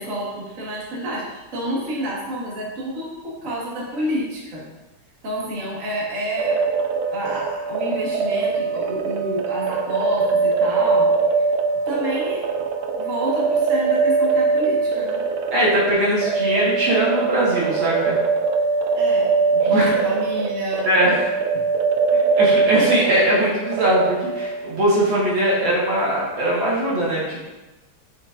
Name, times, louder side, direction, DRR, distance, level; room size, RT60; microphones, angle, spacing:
voice 1, 0.0-4.7 5.2-6.8 7.1-11.1 11.9-12.4 13.0-15.2 18.9-19.3 19.7-20.9 21.5-21.7, equal, 40° right, -6 dB, 1.9 m, -29 dB
sound 1, 6.4-24.8, right 4 dB, 90° right, 0.8 m, -22 dB
voice 2, 15.5-18.2 19.5-20.0 20.8-21.3 22.1-27.5, right 1 dB, 65° right, -6 dB, 2.4 m, -21 dB
7.5 x 7.0 x 2.6 m, 1.1 s
omnidirectional pair, 2.3 m